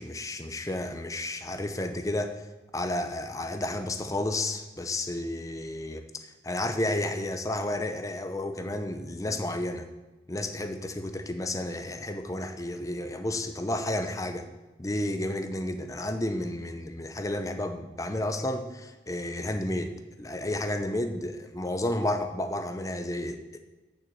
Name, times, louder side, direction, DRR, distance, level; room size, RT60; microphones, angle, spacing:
voice 1, 0.0-2.4 2.7-6.0 6.4-9.9 10.3-14.5 14.8-19.9 20.2-23.6, left 1 dB, 20° left, 7 dB, 0.7 m, -31 dB
6.6 x 6.0 x 7.5 m, 1.2 s
head